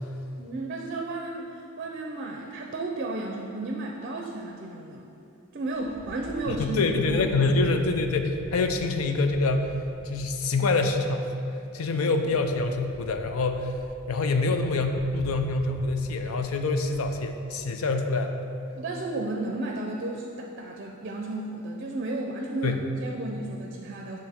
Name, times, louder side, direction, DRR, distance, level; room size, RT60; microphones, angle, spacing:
voice 1, 0.4-5.1 5.5-6.8 7.1-7.6 12.0-12.1 18.8-24.2, right 2 dB, 45° right, 1 dB, 0.5 m, -33 dB
sound 1, 5.7-11.2 11.8-11.9 12.1-17.6, equal, 50° left, 1.3 m, -46 dB
voice 2, 6.5-9.8 10.0-11.3 11.7-13.7 14.1-18.4 22.6-22.8, left 3 dB, 85° left, 6 dB, 0.5 m, -26 dB
8.7 x 3.1 x 4.2 m, 2.7 s
head